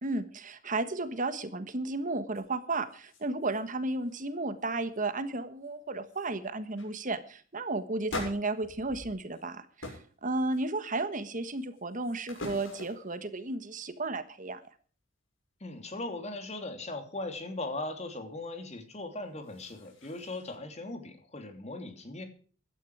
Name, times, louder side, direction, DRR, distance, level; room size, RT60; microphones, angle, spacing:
voice 1, 0.0-14.6, right 2 dB, 40° right, 12 dB, 1.4 m, -33 dB
sound 1, 2.3-2.4 2.8-3.6 3.9-4.2 4.6-5.0 5.6-5.7 6.1-6.3 6.7-6.9 8.1-9.5 9.8-10.1 10.5-11.0 11.6-13.2 19.2-20.6, left 2 dB, 80° left, 7.2 m, -44 dB
voice 2, 15.6-22.3, left 2 dB, 35° left, 7 dB, 3.0 m, -39 dB
16.5 x 12.5 x 4.8 m, 0.42 s
head